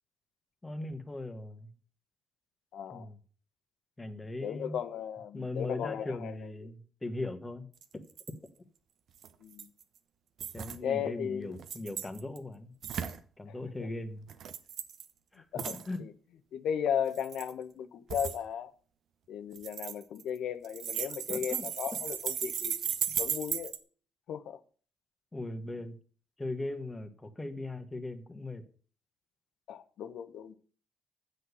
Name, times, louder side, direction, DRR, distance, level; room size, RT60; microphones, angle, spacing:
voice 1, 0.6-1.7 2.9-3.2 4.0-4.7 5.3-7.7 10.5-12.7 13.4-14.2 15.3-16.0 20.9-21.7 25.3-25.9 26.4-28.6, left 2 dB, 15° left, 1.5 m, -39 dB
voice 2, 2.7-3.1 4.4-6.5 9.4-9.7 10.8-11.6 13.5-13.6 15.5-16.1 16.5-18.7 19.3-22.8 23.2-23.7 24.3-24.6 29.7-30.6, left 8 dB, 75° left, 0.9 m, -36 dB
sound 1, 7.8-8.3 9.2-9.8 10.4-10.8 11.5-12.4 12.8-13.2 14.3-15.1 15.6-15.9 17.1-17.5 18.1-18.4 19.6-20.4 20.6-23.8, right 8 dB, 65° right, 1.0 m, -36 dB
7.7 x 6.7 x 8.2 m
cardioid pair, 90°, 0 cm